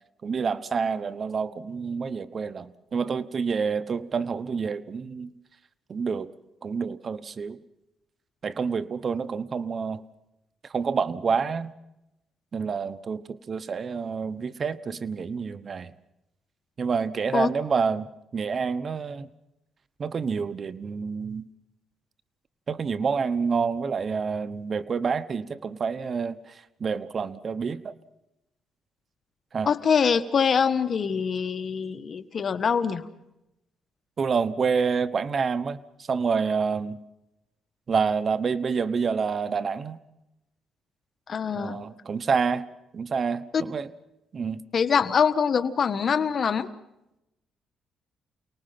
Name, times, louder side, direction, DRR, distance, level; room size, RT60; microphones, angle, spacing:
voice 1, 0.2-5.3 5.9-6.3 6.6-7.6 8.4-10.0 10.7-11.7 12.5-15.9 16.8-18.1 18.3-19.3 20.0-21.4 22.7-26.4 26.8-27.9 29.5-29.7 34.2-35.8 36.1-37.0 37.9-40.0 41.5-42.7 42.9-43.9 44.3-44.6, right 5 dB, 40° right, 13 dB, 1.0 m, -28 dB
voice 2, 29.7-33.1 41.3-41.8 43.5-43.6 44.7-46.7, left 6 dB, 45° left, 10 dB, 1.4 m, -24 dB
29.0 x 19.0 x 5.9 m, 0.89 s
cardioid pair, 105°, 0 cm